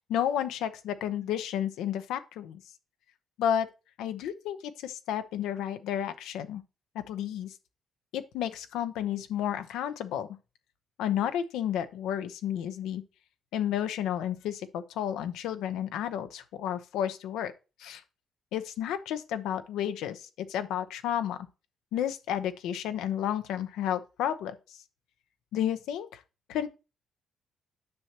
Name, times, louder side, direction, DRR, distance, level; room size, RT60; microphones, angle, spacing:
voice 1, 0.1-2.6 3.4-3.7 4.0-6.6 6.9-7.5 8.1-10.3 11.0-13.0 13.5-17.5 17.8-18.0 18.5-21.4 21.9-24.8 25.5-26.2 26.5-26.7, left 10 dB, 90° left, 0.7 m, -31 dB
9.6 x 6.0 x 2.9 m
cardioid pair, 90°, 0 cm